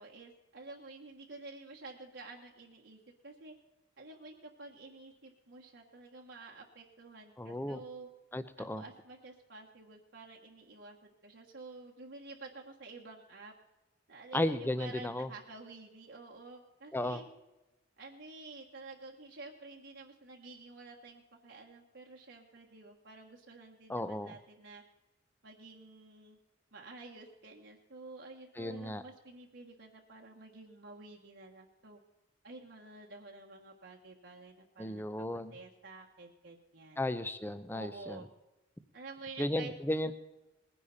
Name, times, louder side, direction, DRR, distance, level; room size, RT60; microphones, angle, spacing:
voice 1, 0.0-3.5 4.0-8.1 8.6-13.5 14.1-17.3 18.0-24.8 25.4-26.4 26.7-32.0 32.4-37.0 37.7-38.3 38.9-39.7 40.0-40.1, right 3 dB, 65° right, -1 dB, 1.5 m, -50 dB
voice 2, 7.4-7.8 8.3-8.8 14.3-15.3 16.9-17.2 23.9-24.4 28.6-29.0 34.8-35.5 37.0-38.2 39.4-40.1, left 1 dB, 10° left, 12 dB, 0.7 m, -34 dB
20.0 x 10.0 x 4.2 m, 1.0 s
head